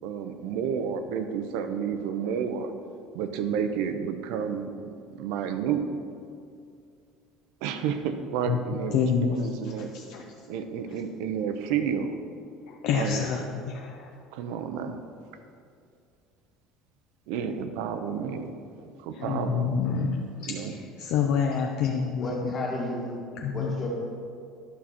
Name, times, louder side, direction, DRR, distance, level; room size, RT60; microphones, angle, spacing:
voice 1, 0.0-2.7 3.1-4.7 5.1-5.9 7.6-9.9 10.5-12.1 12.9-13.3 14.3-15.0 17.3-18.5 18.8-19.7 20.5-20.8, right 7 dB, 70° right, 8 dB, 0.7 m, -30 dB
voice 2, 8.9-9.4 9.9-10.2 10.9-11.0 12.7-14.1 19.2-20.1 20.4-22.5 23.4-23.7, left 7 dB, 50° left, 1 dB, 0.6 m, -28 dB
voice 3, 22.2-23.2 23.4-23.9, left 1 dB, 20° left, -3 dB, 1.6 m, -32 dB
11.5 x 6.0 x 4.2 m, 2.4 s
cardioid pair, 175°, 0 cm